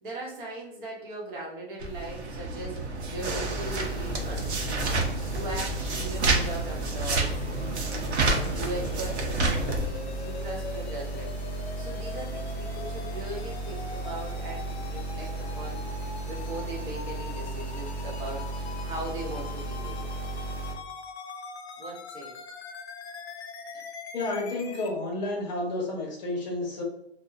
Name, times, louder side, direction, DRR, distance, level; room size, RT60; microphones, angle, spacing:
voice 1, 0.0-5.0 5.3-7.4 8.5-11.4 11.8-20.0 21.8-22.3, right 2 dB, 50° right, -3 dB, 0.9 m, -39 dB
sound 1, 1.8-9.9, right 2 dB, 85° right, 0.7 m, -29 dB
sound 2, 3.2-20.7, right 2 dB, 5° left, 0.5 m, -35 dB
sound 3, 8.3-24.9, left 4 dB, 75° left, 0.6 m, -42 dB
voice 2, 24.1-26.8, left 2 dB, 40° left, 0 dB, 0.7 m, -31 dB
2.7 x 2.1 x 2.4 m, 0.74 s
hypercardioid pair, 140°, 32 cm